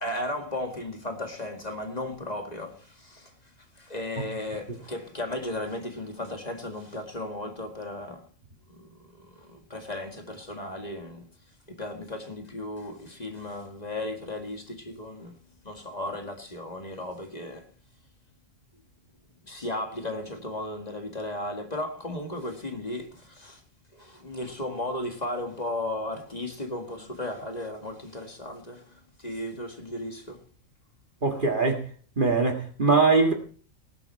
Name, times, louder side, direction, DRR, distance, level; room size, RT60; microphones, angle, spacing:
voice 1, 0.0-3.3 3.7-8.3 8.7-11.3 11.7-15.4 15.6-17.7 19.4-23.6 23.9-30.4, left 1 dB, 30° left, 2.0 m, -35 dB
voice 2, 31.2-31.9 32.2-33.3, right 4 dB, 40° right, 1.9 m, -22 dB
19.0 x 7.7 x 4.6 m
omnidirectional pair, 1.4 m